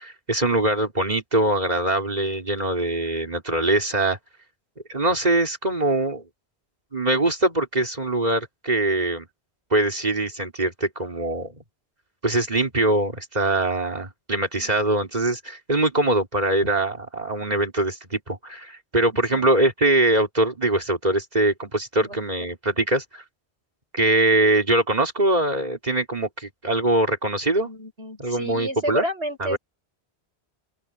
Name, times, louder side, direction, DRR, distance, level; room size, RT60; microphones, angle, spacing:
voice 1, 0.0-4.2 4.9-6.2 6.9-9.3 9.7-11.6 12.2-23.2 23.9-27.7 28.2-29.0 29.4-29.6, right 2 dB, 40° right, 3.7 m, -23 dB
voice 2, 27.6-29.6, equal, 80° right, 7.0 m, -31 dB
open air
omnidirectional pair, 1.1 m